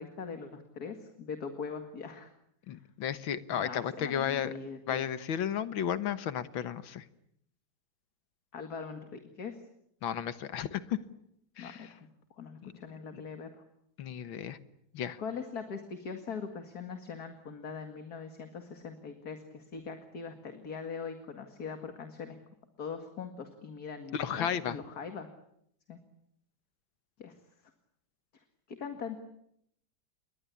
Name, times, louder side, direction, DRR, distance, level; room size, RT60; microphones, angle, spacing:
voice 1, 0.0-2.3 3.5-5.1 8.5-9.6 11.6-12.1 12.4-13.5 15.2-22.4 22.8-25.3 25.9-26.0 27.2-27.3 28.7-29.2, left 5 dB, 50° left, 7 dB, 2.5 m, -41 dB
voice 2, 2.7-4.5 4.9-7.0 10.0-11.0 11.6-11.9 12.6-12.7 13.1-13.2 14.0-14.6 14.9-15.2 24.1-24.8, left 9 dB, 80° left, 13 dB, 2.0 m, -33 dB
29.0 x 22.5 x 8.5 m, 0.74 s
omnidirectional pair, 2.1 m